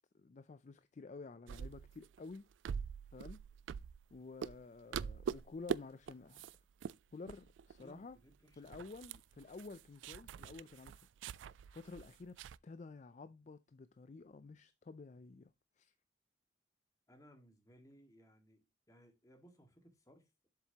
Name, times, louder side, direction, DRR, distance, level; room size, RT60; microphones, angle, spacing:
voice 1, 0.1-2.4 3.1-3.4 4.1-6.5 7.1-8.2 8.6-11.0 11.7-12.4 12.6-15.5 15.8-15.9, left 3 dB, 40° left, 0.4 m, -51 dB
sound 1, 1.5-4.2 4.4-4.7 4.9-5.8 6.1-6.6 6.8-6.9 7.3-7.8 8.1-8.2 8.5-12.6, right 7 dB, 80° right, 0.3 m, -43 dB
voice 2, 7.8-8.7 17.1-20.5, equal, 20° left, 1.8 m, -63 dB
7.5 x 7.2 x 2.9 m
head